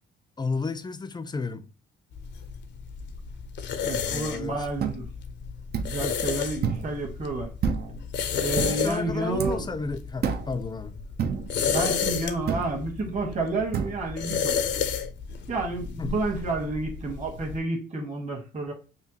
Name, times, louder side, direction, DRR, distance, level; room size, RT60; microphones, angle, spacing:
voice 1, 0.4-1.7 4.1-4.7 8.6-11.0 16.0-16.1, left 4 dB, 20° left, 0.4 m, -32 dB
sound 1, 2.1-17.6, left 7 dB, 65° left, 0.7 m, -32 dB
voice 2, 3.8-5.1 5.8-7.5 8.4-9.7 11.7-14.6 15.5-18.7, right 2 dB, 40° right, 1.6 m, -30 dB
sound 2, 4.8-5.0 5.7-6.0 6.6-6.9 7.6-8.0 8.6-8.8 9.4-9.7 10.2-10.6 11.2-11.5 12.5-12.8 13.7-14.0, right 6 dB, 55° right, 0.6 m, -28 dB
5.6 x 2.1 x 2.9 m
cardioid pair, 90°, 20 cm